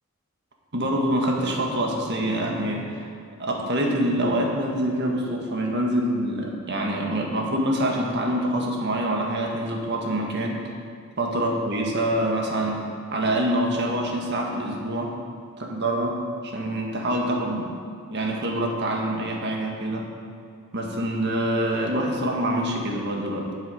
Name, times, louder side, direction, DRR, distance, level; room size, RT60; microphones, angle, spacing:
voice 1, 0.7-3.1 3.4-10.6 11.2-15.1 15.6-17.8 18.1-20.1 20.7-23.5, right 1 dB, 55° right, 0 dB, 1.5 m, -25 dB
8.8 x 7.3 x 6.4 m, 2.3 s
head